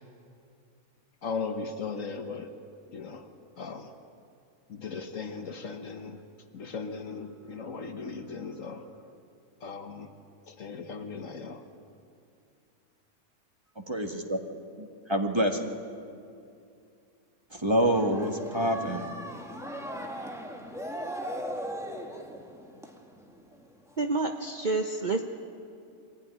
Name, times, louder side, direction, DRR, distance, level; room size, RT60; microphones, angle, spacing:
voice 1, 1.2-2.6 2.9-3.3 3.6-3.9 4.7-6.2 6.5-8.9 9.6-10.1 10.5-11.6, left 4 dB, 65° left, 6 dB, 1.5 m, -37 dB
voice 2, 13.9-14.4 14.8-15.6 17.5-19.0, equal, 20° right, 3 dB, 1.7 m, -27 dB
sound 1, 17.8-23.6 24.0-24.1, equal, ahead, 1.8 m, -38 dB
voice 3, 24.0-25.2, right 3 dB, 35° right, 4 dB, 1.0 m, -28 dB
24.0 x 16.0 x 9.9 m, 2.5 s
omnidirectional pair, 1.5 m